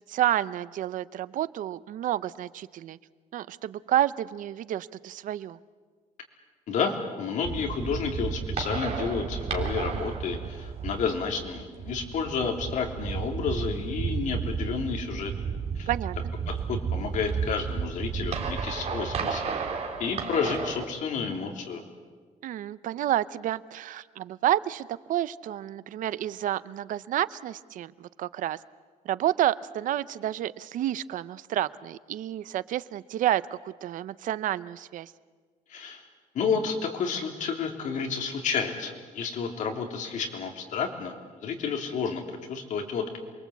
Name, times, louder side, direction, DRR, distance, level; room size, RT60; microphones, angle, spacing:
voice 1, 0.1-3.0 3.3-5.6 15.9-16.2 22.4-28.6 29.0-35.1, right 12 dB, 70° right, 16 dB, 0.7 m, -29 dB
voice 2, 6.7-15.3 15.8-15.9 16.5-19.4 20.0-21.8 35.7-36.0 36.3-42.2 42.5-43.0, left 5 dB, 65° left, 3 dB, 3.5 m, -30 dB
sound 1, 7.4-20.8, right 6 dB, 50° right, 3.1 m, -33 dB
28.0 x 22.5 x 8.3 m, 1.5 s
cardioid pair, 160°, 14 cm